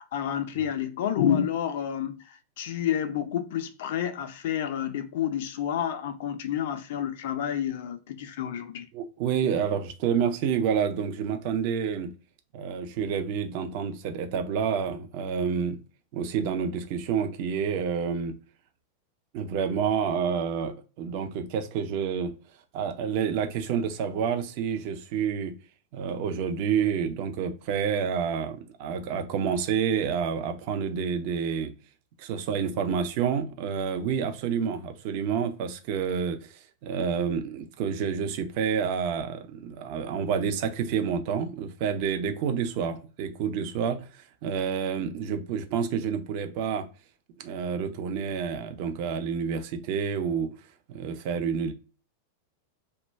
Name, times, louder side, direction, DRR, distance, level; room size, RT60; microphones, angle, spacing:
voice 1, 0.0-8.9, left 9 dB, 55° left, 0.3 m, -29 dB
voice 2, 8.9-12.1 12.5-15.8 16.1-18.3 19.3-22.3 22.7-25.5 25.9-31.7 32.2-46.9 47.4-50.5 50.9-51.7, right 7 dB, 45° right, 0.5 m, -29 dB
2.2 x 2.1 x 3.2 m
figure-of-eight pair, 90°, 0 cm